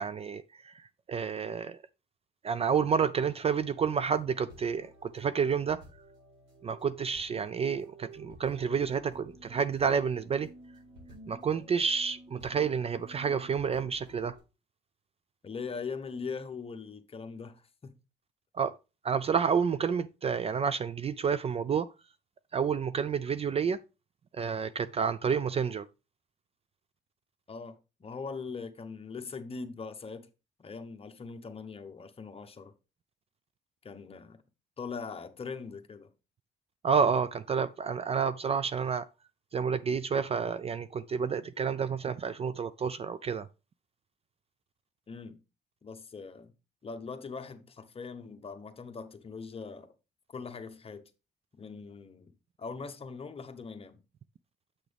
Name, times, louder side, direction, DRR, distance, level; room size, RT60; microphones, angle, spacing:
voice 1, 0.0-1.8 2.4-5.8 6.6-10.5 11.3-14.4 18.5-18.7 19.0-21.9 22.5-23.8 24.3-25.9 36.8-39.1 39.5-43.5, right 6 dB, 30° right, 0.3 m, -29 dB
sound 1, 3.8-14.4, right 1 dB, 80° right, 4.2 m, -53 dB
voice 2, 15.4-18.0 27.5-30.3 30.6-32.7 33.8-34.4 34.8-36.1 45.1-45.4 45.8-46.5 46.8-49.9 50.3-51.1 51.6-54.0, left 5 dB, 30° left, 1.0 m, -41 dB
7.9 x 6.1 x 3.4 m
cardioid pair, 110°, 19 cm